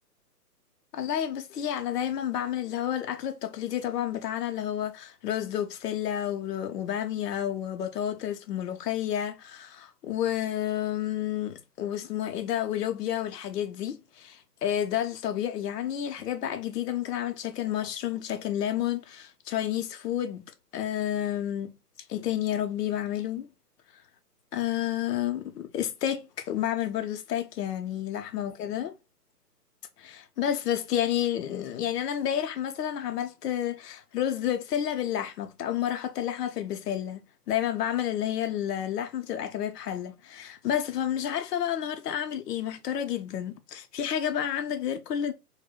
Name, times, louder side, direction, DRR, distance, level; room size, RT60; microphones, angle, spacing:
voice 1, 0.9-20.5 20.7-21.7 22.1-23.5 24.5-28.9 30.0-45.3, left 10 dB, 75° left, 0.6 m, -30 dB
2.3 x 2.1 x 3.5 m
hypercardioid pair, 155°, 48 cm